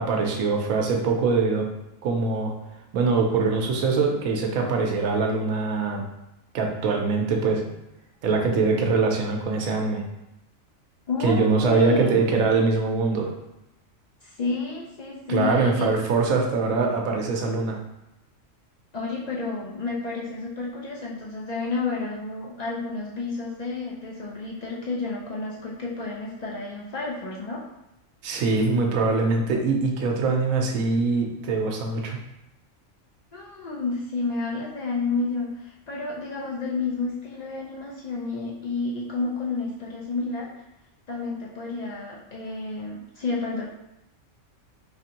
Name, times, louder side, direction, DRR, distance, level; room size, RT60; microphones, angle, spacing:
voice 1, 0.0-1.7 2.0-2.5 2.9-6.1 6.5-7.6 8.2-10.0 11.2-13.3 15.3-17.8 28.2-32.2, right 4 dB, 85° right, 1 dB, 1.1 m, -23 dB
voice 2, 11.1-12.2 14.2-15.9 18.9-27.6 33.3-40.5 41.1-43.7, left 3 dB, 80° left, -4 dB, 0.3 m, -30 dB
4.2 x 2.5 x 2.8 m, 0.90 s
omnidirectional pair, 1.4 m